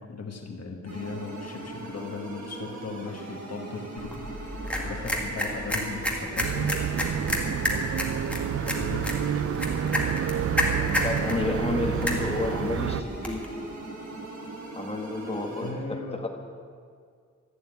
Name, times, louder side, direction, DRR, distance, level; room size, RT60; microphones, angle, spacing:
voice 1, 0.0-7.1 7.4-7.9 8.3-9.2 10.6-12.9 15.6-16.3, left 4 dB, 55° left, 3 dB, 1.5 m, -39 dB
sound 1, 0.9-15.7, right 2 dB, 70° right, 4.7 m, -40 dB
sound 2, 4.0-13.5, left 1 dB, 5° left, 2.0 m, -31 dB
sound 3, 6.4-13.0, right 9 dB, 50° right, 0.4 m, -29 dB
voice 2, 11.0-13.5 14.7-16.3, left 2 dB, 20° left, 0 dB, 1.7 m, -30 dB
13.5 x 12.0 x 9.3 m, 2.1 s
wide cardioid pair, 180°, 30 cm